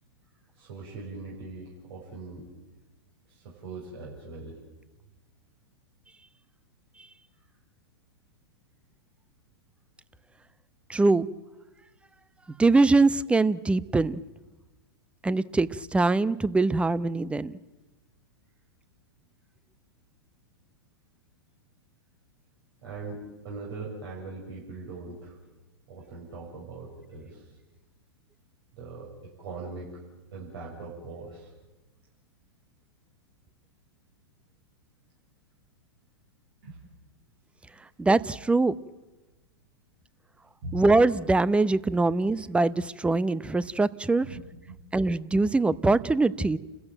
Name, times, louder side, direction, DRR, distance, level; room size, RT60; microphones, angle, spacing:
voice 1, 0.5-2.5 3.3-4.6 22.8-25.4 25.9-27.6 28.7-29.1 29.4-29.9 30.3-31.5 36.6-36.8 37.7-37.8 40.6-40.8 44.2-44.4 44.7-44.8, right 3 dB, 65° right, -3 dB, 6.9 m, -41 dB
voice 2, 10.9-11.3 12.6-14.2 15.2-17.5 38.0-38.7 40.7-44.3 44.9-46.6, right 3 dB, 10° right, 18 dB, 0.7 m, -23 dB
30.0 x 15.0 x 9.1 m, 1.1 s
hypercardioid pair, 110°, 14 cm